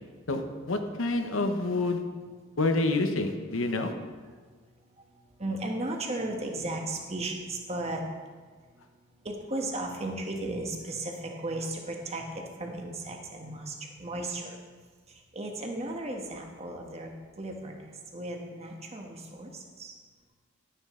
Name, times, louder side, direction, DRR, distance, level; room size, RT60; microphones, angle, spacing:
voice 1, 0.3-2.0 2.6-3.9, left 2 dB, 75° left, 6 dB, 1.0 m, -28 dB
voice 2, 5.4-8.0 9.2-13.7 14.0-14.5 15.3-17.1 17.4-17.8 18.1-19.9, right 2 dB, 30° right, 2 dB, 1.4 m, -35 dB
11.5 x 9.8 x 3.7 m, 1.5 s
head